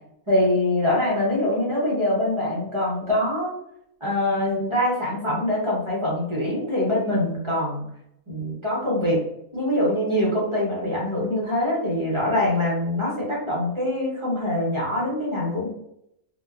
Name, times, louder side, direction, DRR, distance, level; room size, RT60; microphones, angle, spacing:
voice 1, 0.3-3.5 4.0-7.8 8.3-9.2 9.5-15.7, left 1 dB, 30° right, -6 dB, 0.7 m, -24 dB
2.8 x 2.2 x 2.3 m, 0.77 s
omnidirectional pair, 1.5 m